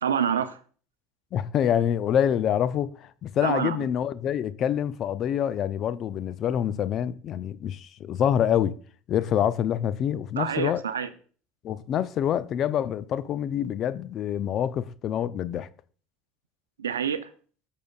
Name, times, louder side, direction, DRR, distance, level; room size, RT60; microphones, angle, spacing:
voice 1, 0.0-0.6 3.4-3.9 10.4-11.1 16.8-17.3, right 8 dB, 90° right, 0.6 m, -27 dB
voice 2, 1.3-8.7 9.1-10.8 11.6-15.7, left 9 dB, 50° left, 0.5 m, -26 dB
15.0 x 6.7 x 2.4 m
hypercardioid pair, 75°, 0 cm